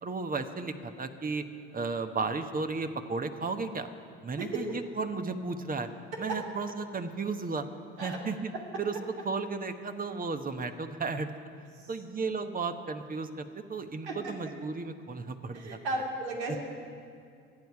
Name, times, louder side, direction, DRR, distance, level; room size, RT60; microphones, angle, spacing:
voice 1, 0.0-1.4 1.7-3.9 4.2-5.9 6.2-7.7 8.0-8.5 8.8-8.9 9.2-11.3 11.9-15.8 16.5-16.6, right 4 dB, 25° right, 8 dB, 1.2 m, -34 dB
voice 2, 4.4-4.8 6.3-6.4 8.0-8.2 11.7-11.9 14.1-14.3 15.5-16.6, right 2 dB, 85° right, -1 dB, 2.6 m, -35 dB
26.0 x 9.5 x 4.8 m, 2.3 s
hypercardioid pair, 60°, 32 cm